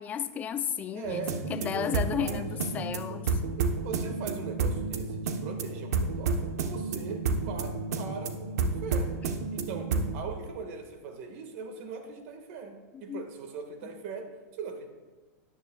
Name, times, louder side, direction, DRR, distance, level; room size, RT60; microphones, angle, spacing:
voice 1, 0.0-1.2 1.5-3.4 13.1-13.3, left 8 dB, 20° left, 0.4 m, -33 dB
voice 2, 0.9-2.4 3.6-9.2 9.5-14.9, right 5 dB, 55° right, 1.6 m, -40 dB
sound 1, 1.0-10.2, right 4 dB, 75° right, 1.0 m, -31 dB
13.0 x 10.0 x 2.3 m
supercardioid pair, 145°, 9 cm